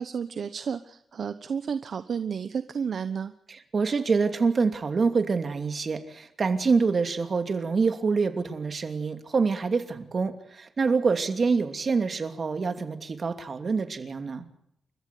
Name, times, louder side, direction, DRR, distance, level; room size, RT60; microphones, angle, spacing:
voice 1, 0.0-3.3, right 6 dB, 65° right, 11 dB, 1.0 m, -32 dB
voice 2, 3.5-14.5, right 4 dB, 50° right, 7 dB, 2.8 m, -26 dB
30.0 x 14.0 x 8.5 m, 0.75 s
cardioid pair, 85°, 0 cm